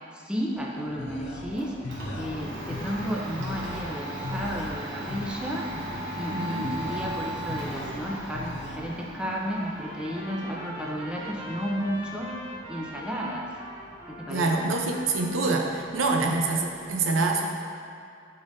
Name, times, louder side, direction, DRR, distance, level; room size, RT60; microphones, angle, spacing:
voice 1, 0.1-1.8 2.1-5.7 6.1-12.3 12.7-13.5 14.1-14.7, equal, 5° right, -3 dB, 0.6 m, -32 dB
sound 1, 0.6-8.8, left 2 dB, 60° left, 0.6 m, -40 dB
Domestic sounds home sounds, 1.1-16.9, right 1 dB, 65° right, 1.3 m, -38 dB
voice 2, 6.3-6.7 14.3-17.5, right 3 dB, 85° right, 1 dB, 0.7 m, -26 dB
Trumpet, 8.9-15.7, equal, 35° right, 1.3 m, -42 dB
10.5 x 3.8 x 2.6 m, 2.5 s
head